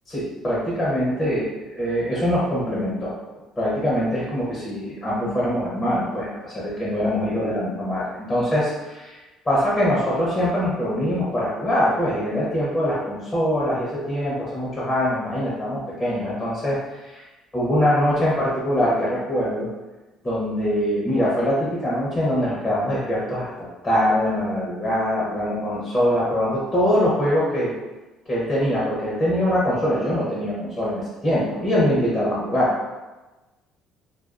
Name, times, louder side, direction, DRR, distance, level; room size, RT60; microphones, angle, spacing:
voice 1, 0.1-3.1 3.6-9.2 9.4-17.2 17.5-19.7 20.2-27.7 28.3-32.7, equal, 15° left, -7 dB, 0.8 m, -23 dB
2.4 x 2.3 x 2.4 m, 1.1 s
cardioid pair, 100°, 0 cm